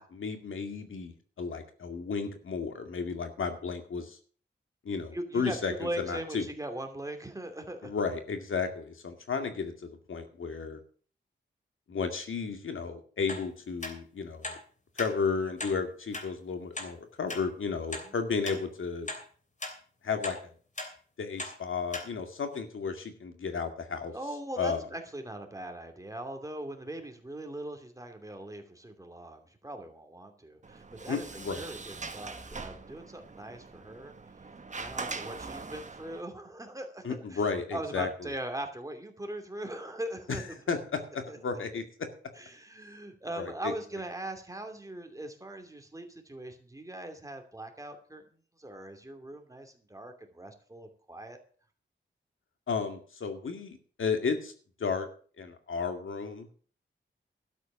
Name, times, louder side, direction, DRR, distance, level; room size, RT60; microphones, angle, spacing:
voice 1, 0.0-4.2 4.8-6.5 7.8-10.8 11.9-14.6 15.0-19.1 20.0-20.4 21.2-24.1 24.6-24.8 31.1-31.6 37.0-38.3 40.7-40.8 41.1-41.8 43.4-43.7 52.7-54.5 54.8-55.1 55.4-56.7, left 5 dB, 85° left, 6 dB, 2.2 m, -33 dB
voice 2, 5.1-7.9 18.0-18.1 24.1-31.3 31.5-34.1 34.7-37.4 37.7-40.6 41.3-41.4 42.3-48.2 48.6-51.4, right 1 dB, 15° right, 5 dB, 2.7 m, -40 dB
sound 1, 13.3-13.4 13.8-13.9 14.4-14.6 15.0-15.1 15.6-15.8 16.1-16.3 16.7-16.9 17.3-17.4 17.9-18.1 18.4-18.6 19.1-19.2 19.6-19.8 20.2-20.4 20.8-20.9 21.4-21.5 21.9-22.1 22.5-22.6, left 2 dB, 40° left, 3.2 m, -37 dB
Sliding door, 30.6-36.2, right 4 dB, 35° right, 1.3 m, -42 dB
12.5 x 8.2 x 7.0 m, 0.43 s
wide cardioid pair, 105°, 20 cm